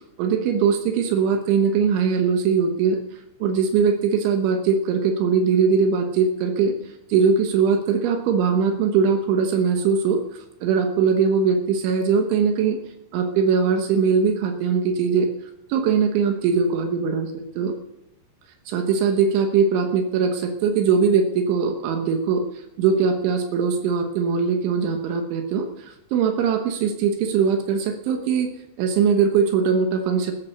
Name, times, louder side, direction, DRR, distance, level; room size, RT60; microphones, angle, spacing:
voice 1, 0.0-3.0 3.4-12.8 13.1-15.3 15.7-17.8 18.7-22.4 22.8-28.5 28.8-30.3, right 6 dB, 80° right, 5 dB, 3.6 m, -21 dB
14.0 x 12.5 x 6.5 m, 0.90 s
omnidirectional pair, 5.4 m